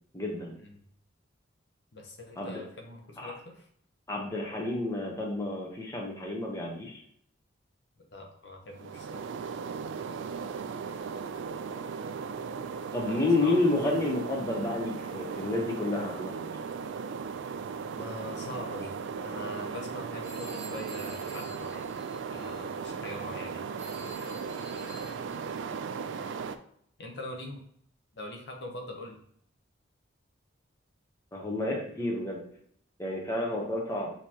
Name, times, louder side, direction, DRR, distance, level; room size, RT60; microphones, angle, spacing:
voice 1, 0.1-0.6 2.4-2.6 3.2-3.3 4.1-7.0 12.9-16.5 31.3-32.4 33.0-34.1, left 2 dB, 15° left, -2 dB, 0.8 m, -30 dB
voice 2, 1.9-3.6 8.1-9.2 13.1-13.6 17.9-18.9 19.2-21.9 22.3-23.7 27.0-27.6 28.1-29.2, left 1 dB, 60° left, 2 dB, 0.8 m, -42 dB
sound 1, 8.7-26.6, right 6 dB, 70° right, 0.3 m, -37 dB
Telephone, 20.2-22.6 23.8-25.5, right 3 dB, 15° right, 1.3 m, -47 dB
6.4 x 2.9 x 2.9 m, 0.65 s
head